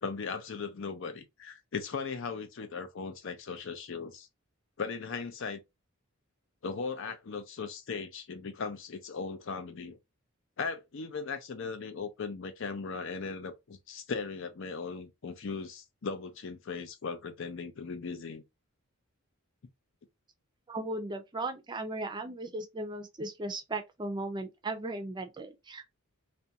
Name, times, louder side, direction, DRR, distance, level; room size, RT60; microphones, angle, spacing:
voice 1, 0.0-4.3 4.8-5.6 6.6-10.0 10.6-18.4, left 5 dB, 60° left, 0.5 m, -38 dB
voice 2, 20.7-25.9, right 2 dB, 20° right, 0.4 m, -37 dB
2.5 x 2.2 x 2.7 m
head